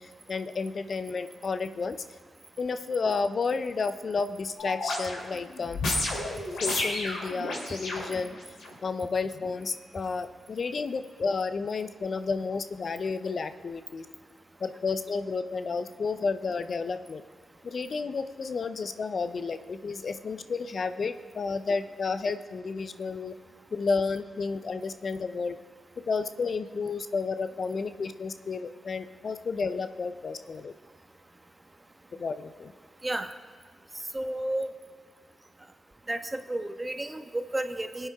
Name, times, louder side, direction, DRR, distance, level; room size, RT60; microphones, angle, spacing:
voice 1, 0.0-2.0 2.6-5.8 6.6-8.4 8.8-14.1 14.6-17.2 17.6-23.3 23.7-25.6 26.1-30.7 32.2-32.7, left 4 dB, 60° left, 10 dB, 0.6 m, -31 dB
sound 1, 4.6-8.7 9.3-9.5, left 2 dB, 85° left, 3.2 m, -32 dB
voice 2, 34.1-34.7 36.1-38.1, right 1 dB, 25° right, 7 dB, 1.2 m, -32 dB
22.0 x 8.7 x 3.5 m, 1.5 s
supercardioid pair, 45°, 0 cm